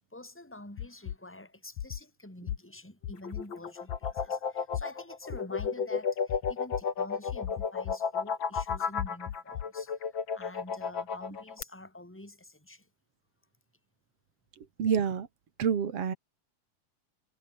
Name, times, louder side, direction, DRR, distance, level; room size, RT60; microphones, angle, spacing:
voice 1, 0.1-12.9, left 1 dB, 5° left, 4.8 m, -48 dB
sound 1, 0.8-1.2 1.8-2.0 2.5-2.6 3.0-3.4 3.9-4.3 4.7-4.8 5.3-5.7 6.3-6.8 7.3-7.9 8.6-9.6, left 11 dB, 80° left, 2.9 m, -36 dB
sound 2, 3.1-11.6, left 6 dB, 40° left, 3.0 m, -33 dB
voice 2, 14.6-15.3 15.6-16.1, right 7 dB, 55° right, 3.3 m, -28 dB
omnidirectional pair, 3.3 m